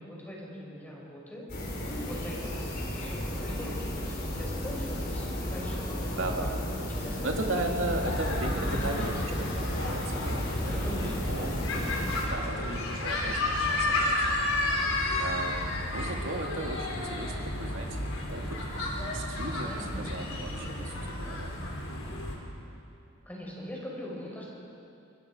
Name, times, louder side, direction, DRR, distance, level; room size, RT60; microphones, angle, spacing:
voice 1, 0.0-1.5 2.0-6.5 7.0-7.6 8.7-9.7 10.7-11.1 11.4-11.5 12.1-12.4 15.5-15.6 19.6-21.3 23.3-24.5, left 1 dB, 10° left, -4 dB, 5.4 m, -42 dB
sound 1, 1.5-12.3, equal, 50° left, 4.5 m, -33 dB
voice 2, 6.2-9.2 9.6-10.5 10.8-11.5 12.3-14.2 15.2-18.6 19.1-21.5, right 2 dB, 70° right, 2 dB, 2.3 m, -36 dB
sound 2, 8.0-22.3, left 2 dB, 85° left, 4.0 m, -32 dB
25.5 x 23.0 x 5.1 m, 2.7 s
head